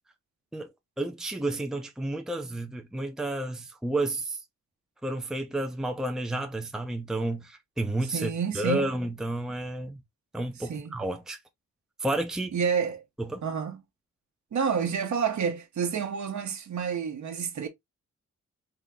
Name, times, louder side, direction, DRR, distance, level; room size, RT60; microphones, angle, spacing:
voice 1, 1.0-4.4 5.0-10.0 10.3-11.4 12.0-12.6 13.2-13.4, right 1 dB, ahead, 0.6 m, -31 dB
voice 2, 8.1-8.9 10.6-10.9 12.5-13.0 13.4-13.8 14.5-17.7, right 6 dB, 65° right, 1.0 m, -29 dB
3.9 x 2.9 x 3.5 m
wide cardioid pair, 115°, 31 cm